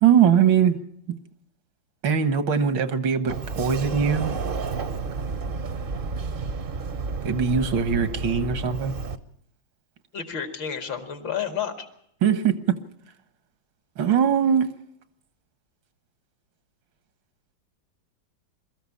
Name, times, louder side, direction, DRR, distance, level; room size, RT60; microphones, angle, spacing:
voice 1, 0.0-0.8 2.0-4.3 7.2-9.0 12.2-12.8 14.0-14.7, right 7 dB, 80° right, 11 dB, 2.0 m, -21 dB
Sliding door, 3.3-9.2, right 4 dB, 45° right, 0.7 m, -31 dB
voice 2, 10.1-11.9, left 8 dB, 80° left, 7 dB, 2.8 m, -30 dB
22.0 x 14.0 x 8.5 m, 0.71 s
omnidirectional pair, 2.1 m